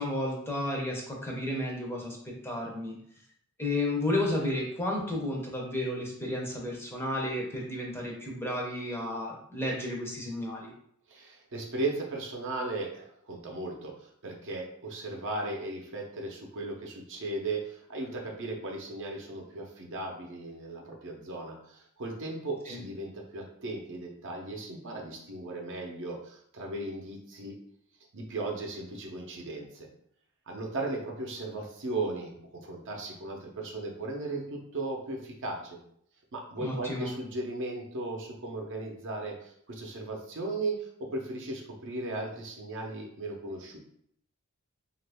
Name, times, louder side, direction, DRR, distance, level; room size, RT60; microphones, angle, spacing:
voice 1, 0.0-2.2 2.4-3.0 3.6-10.7 22.7-22.8 36.6-37.1, left 1 dB, 10° left, -2 dB, 0.6 m, -32 dB
voice 2, 11.1-27.6 28.1-29.9 30.5-35.8 36.3-43.8, right 2 dB, 55° right, 1 dB, 0.6 m, -36 dB
2.9 x 2.4 x 3.4 m, 0.67 s
head